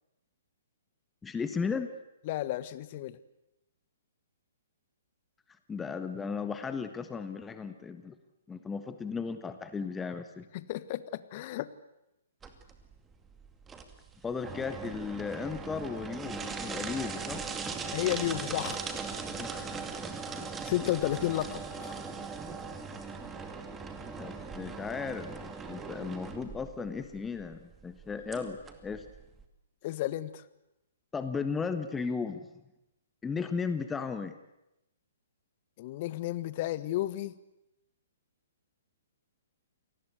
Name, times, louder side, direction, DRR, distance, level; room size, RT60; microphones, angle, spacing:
voice 1, 1.2-1.9 5.7-8.2 8.5-10.4 14.2-17.5 19.4-19.8 20.4-20.5 24.1-29.0 31.1-32.5 33.2-34.3, left 5 dB, 10° left, 9 dB, 1.5 m, -35 dB
voice 2, 2.3-3.2 10.5-11.7 17.9-18.8 20.6-22.0 29.8-30.4 35.8-37.3, left 15 dB, 40° left, 15 dB, 1.4 m, -32 dB
sound 1, 12.4-29.5, right 5 dB, 15° right, 2.4 m, -40 dB
28.0 x 19.5 x 8.3 m, 0.89 s
figure-of-eight pair, 125°, 0 cm